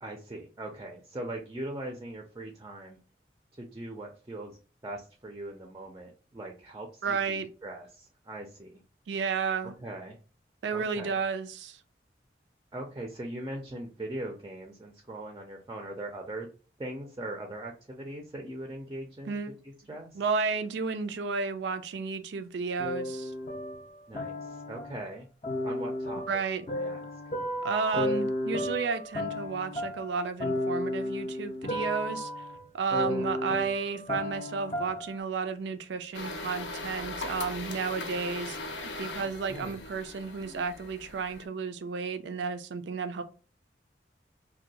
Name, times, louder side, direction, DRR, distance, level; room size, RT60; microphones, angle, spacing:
voice 1, 0.0-3.0 3.6-4.6 4.8-8.8 9.8-10.2 10.7-11.2 12.7-16.5 16.8-19.4 19.6-20.2 24.1-25.3 25.6-27.1 33.0-33.4 39.5-39.8, right 1 dB, 20° right, 0.4 m, -40 dB
voice 2, 7.0-7.5 9.1-9.7 10.6-11.8 19.3-19.5 20.1-23.3 26.3-26.6 27.6-32.3 32.7-43.2, right 5 dB, 80° right, 0.4 m, -32 dB
sound 1, 22.8-25.0 25.4-35.2, left 1 dB, 35° left, 0.5 m, -33 dB
sound 2, 36.1-41.5, left 2 dB, 90° left, 0.7 m, -39 dB
2.7 x 2.2 x 4.0 m
head